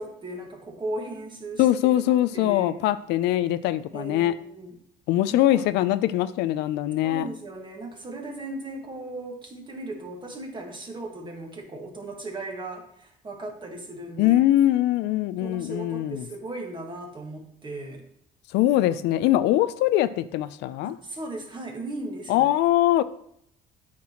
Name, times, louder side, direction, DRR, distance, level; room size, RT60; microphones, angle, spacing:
voice 1, 0.0-1.9 2.3-2.7 3.9-4.8 5.3-5.6 7.0-14.4 15.4-18.0 20.8-22.5, right 2 dB, 30° right, 1.7 m, -37 dB
voice 2, 1.6-4.3 5.1-7.3 14.2-16.3 18.5-21.0 22.3-23.0, left 14 dB, 85° left, 0.4 m, -22 dB
8.4 x 6.0 x 2.9 m
cardioid pair, 110°, 17 cm